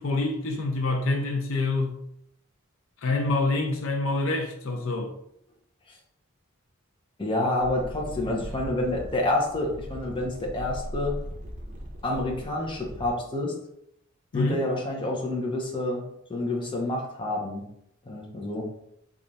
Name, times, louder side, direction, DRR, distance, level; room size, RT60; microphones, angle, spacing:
voice 1, 0.0-2.0 3.0-5.1 8.1-8.3 14.3-14.6, left 2 dB, 75° left, 0.6 m, -26 dB
voice 2, 7.2-11.2 12.0-13.5 14.3-16.0 16.3-17.6 18.1-18.6, left 1 dB, 25° left, 0.7 m, -28 dB
sound 1, 7.6-13.1, equal, 35° right, 0.7 m, -39 dB
3.2 x 2.5 x 4.0 m
head